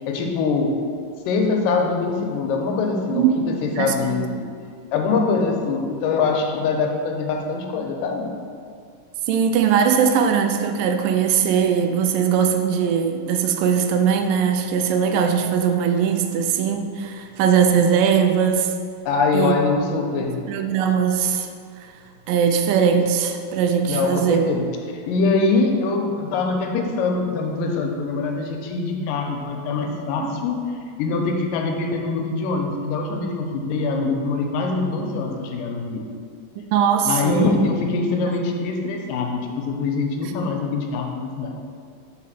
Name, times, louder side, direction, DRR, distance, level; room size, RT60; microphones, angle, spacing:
voice 1, 0.1-0.8 1.3-4.4 4.9-8.3 19.1-20.5 23.9-24.7 24.9-30.6 31.0-36.0 37.1-41.5, left 4 dB, 90° left, 2 dB, 2.3 m, -23 dB
voice 2, 3.1-4.3 9.3-18.7 19.3-19.5 20.1-21.5 21.8-21.9 22.3-24.5 30.2-30.3 36.7-37.5 38.3-38.4 40.2-40.3, right 7 dB, 85° right, 5 dB, 2.2 m, -20 dB
4.8 x 4.6 x 5.7 m, 2.2 s
omnidirectional pair, 3.8 m